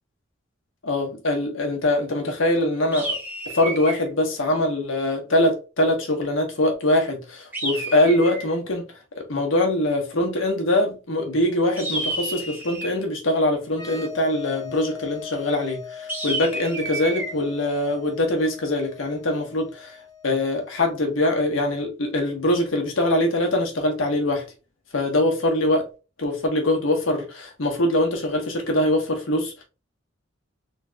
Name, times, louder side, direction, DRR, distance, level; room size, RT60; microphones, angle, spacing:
voice 1, 0.8-3.2 3.5-8.8 9.1-24.4 24.9-25.9 26.2-29.6, left 1 dB, 80° left, 1.4 m, -23 dB
sound 1, 2.9-4.1 7.5-8.6 11.8-13.0 16.1-17.3, right 2 dB, 10° right, 2.1 m, -30 dB
sound 2, 13.7-21.2, left 7 dB, 20° left, 0.6 m, -40 dB
4.2 x 3.7 x 2.4 m
head